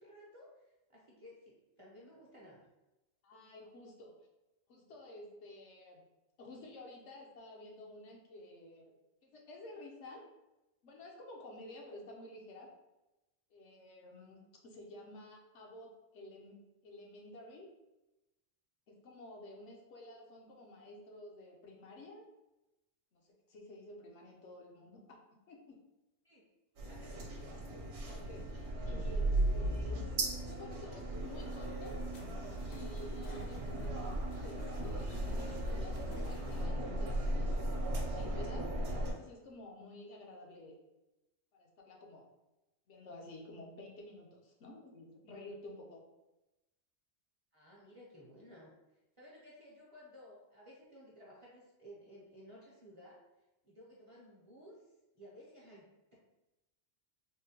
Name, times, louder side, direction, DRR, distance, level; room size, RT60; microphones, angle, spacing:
voice 1, 0.0-2.7 26.2-26.5 26.9-27.6 47.5-48.7 49.2-53.2 53.6-54.8 55.1-56.1, equal, 35° right, -6 dB, 0.6 m, -56 dB
voice 2, 3.2-4.1 4.7-6.0 6.4-8.9 9.2-10.2 10.8-12.7 13.5-17.7 18.9-22.2 23.1-25.2 25.5-25.8 28.0-32.0 32.6-34.0 34.4-37.7 38.0-40.8 41.5-42.3 42.9-46.0, left 1 dB, 75° left, -1 dB, 1.0 m, -52 dB
sound 1, 26.8-39.1, right 1 dB, 70° right, 0.9 m, -36 dB
sound 2, 31.2-36.6, left 2 dB, 55° left, 0.5 m, -56 dB
3.6 x 2.1 x 2.7 m, 0.99 s
omnidirectional pair, 1.2 m